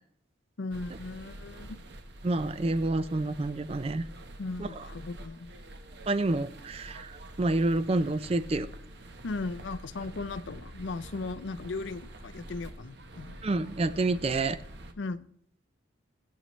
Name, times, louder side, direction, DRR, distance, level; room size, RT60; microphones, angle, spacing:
voice 1, 0.6-1.8 4.4-5.5 9.2-13.4 15.0-15.2, left 3 dB, 65° left, 0.5 m, -37 dB
sound 1, 0.7-14.9, right 1 dB, 55° right, 1.0 m, -46 dB
voice 2, 2.2-4.0 4.6-4.7 6.1-8.7 13.4-14.6, right 2 dB, 30° right, 0.4 m, -28 dB
20.5 x 7.9 x 3.1 m
head